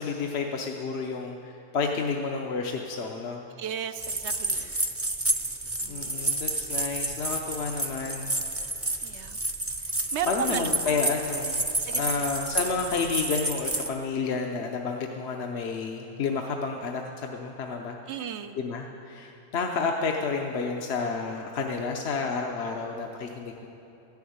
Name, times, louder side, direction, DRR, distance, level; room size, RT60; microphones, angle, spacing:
voice 1, 0.0-3.5 5.9-8.3 10.3-11.6 11.9-18.0 18.5-23.7, left 4 dB, 75° left, 2 dB, 1.0 m, -30 dB
voice 2, 3.6-4.7 5.8-6.4 9.0-9.4 9.8-10.8 11.8-12.3 18.1-18.6, right 8 dB, 85° right, 10 dB, 0.9 m, -35 dB
sound 1, 4.0-13.9, right 2 dB, 20° right, 0.5 m, -30 dB
13.5 x 7.1 x 9.3 m, 2.9 s
omnidirectional pair, 1.1 m